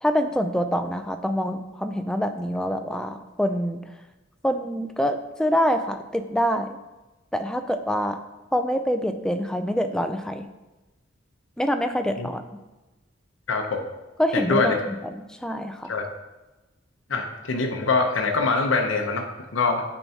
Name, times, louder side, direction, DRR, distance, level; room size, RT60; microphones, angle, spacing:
voice 1, 0.0-3.8 4.4-6.8 7.3-8.2 8.5-10.5 11.6-12.4 14.2-14.8 15.1-15.9, equal, 5° left, 7 dB, 0.3 m, -25 dB
voice 2, 13.5-13.8 14.3-14.8 15.9-16.1 17.1-19.8, left 3 dB, 80° left, 3 dB, 0.7 m, -24 dB
9.0 x 4.5 x 2.7 m, 1.1 s
head